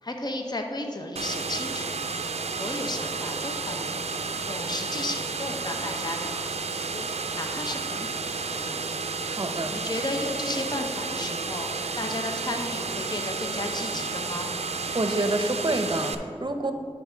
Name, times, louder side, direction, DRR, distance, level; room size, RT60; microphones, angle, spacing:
voice 1, 0.0-2.0 2.5-4.0 4.4-7.1 7.3-9.1 9.7-14.5, left 2 dB, 40° left, 3 dB, 0.7 m, -34 dB
sound 1, 1.2-16.2, right 4 dB, 80° right, 0.4 m, -31 dB
voice 2, 9.3-9.7 14.9-16.7, right 2 dB, 45° right, 7 dB, 0.7 m, -27 dB
9.9 x 3.6 x 5.0 m, 2.3 s
wide cardioid pair, 45°, 11 cm